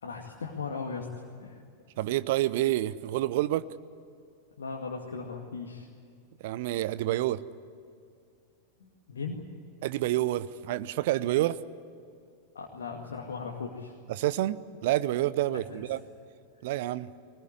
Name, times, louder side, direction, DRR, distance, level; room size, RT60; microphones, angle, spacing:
voice 1, 0.0-1.6 4.6-5.9 8.8-9.4 12.5-13.9 15.5-15.8, left 5 dB, 65° left, 0 dB, 2.2 m, -38 dB
voice 2, 2.0-3.6 6.4-7.4 9.8-11.6 14.1-16.0 16.6-17.1, right 15 dB, 50° right, 16 dB, 0.8 m, -28 dB
21.5 x 19.5 x 9.6 m, 2.4 s
figure-of-eight pair, 90°, 0 cm